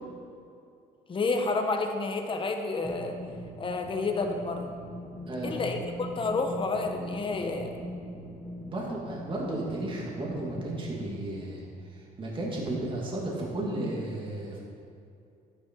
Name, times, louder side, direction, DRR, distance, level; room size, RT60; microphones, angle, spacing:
voice 1, 1.1-3.1 3.6-4.7 5.4-7.7, left 3 dB, 30° left, 4 dB, 1.3 m, -30 dB
sound 1, 2.8-10.6, equal, 15° left, 1.8 m, -41 dB
voice 2, 8.6-11.7 11.9-14.6, right 1 dB, 30° right, -3 dB, 2.6 m, -33 dB
11.5 x 9.8 x 4.7 m, 2.6 s
cardioid pair, 110°, 17 cm